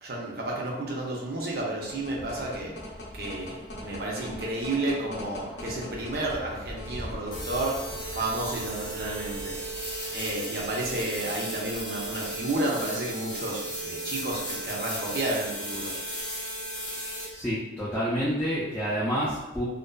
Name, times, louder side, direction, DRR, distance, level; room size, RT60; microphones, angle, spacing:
voice 1, 0.0-2.7 3.1-9.6 10.1-15.9, right 2 dB, 55° right, -3 dB, 0.6 m, -31 dB
sound 1, 1.4-12.2, equal, 70° left, 0.5 m, -42 dB
sound 2, 7.3-17.3, right 1 dB, 25° left, 0.9 m, -35 dB
voice 2, 17.3-19.6, equal, 10° left, -10 dB, 0.4 m, -29 dB
2.5 x 2.3 x 2.2 m, 1.0 s
head